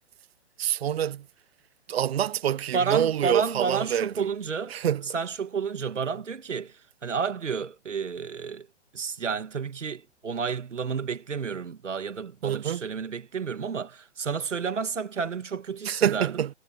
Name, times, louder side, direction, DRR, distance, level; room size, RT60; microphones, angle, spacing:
voice 1, 0.6-1.2 1.9-4.3 4.7-5.0 12.4-12.8 15.8-16.5, right 10 dB, 55° right, 1.3 m, -26 dB
voice 2, 2.7-4.8 5.1-8.7 8.9-16.4, right 6 dB, 85° right, 2.1 m, -31 dB
hypercardioid pair, 140°, 36 cm